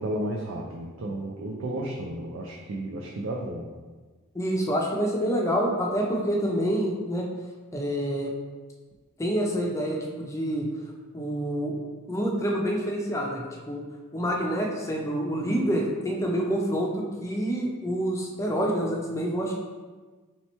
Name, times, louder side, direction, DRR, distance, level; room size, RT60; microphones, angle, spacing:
voice 1, 0.0-3.7, right 1 dB, 70° right, -1 dB, 0.4 m, -33 dB
voice 2, 4.3-7.2 7.7-8.3 9.2-10.7 11.1-11.8 12.1-13.8 14.1-19.5, equal, 15° left, -1 dB, 0.5 m, -27 dB
3.3 x 2.9 x 4.3 m, 1.3 s
head